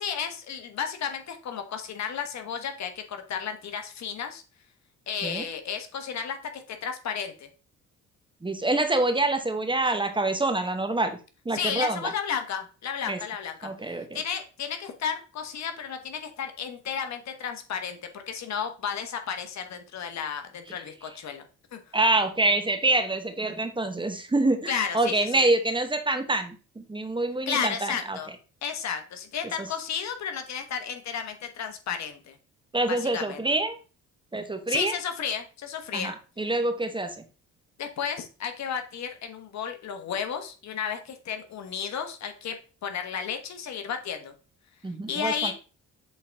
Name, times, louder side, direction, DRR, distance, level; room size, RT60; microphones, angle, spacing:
voice 1, 0.0-4.4 5.1-7.5 11.5-21.4 21.7-21.8 24.7-25.5 27.5-28.3 28.6-32.4 32.9-33.4 34.7-36.1 37.8-42.6 42.8-44.3 45.1-45.5, left 7 dB, 65° left, 6 dB, 1.2 m, -33 dB
voice 2, 8.4-11.2 11.4-12.1 13.1-13.2 13.6-14.2 21.9-28.2 29.6-29.7 32.7-33.8 34.3-34.9 35.9-37.2 44.8-45.5, right 2 dB, 15° right, 7 dB, 1.0 m, -26 dB
7.7 x 3.9 x 3.5 m, 0.35 s
cardioid pair, 90°, 30 cm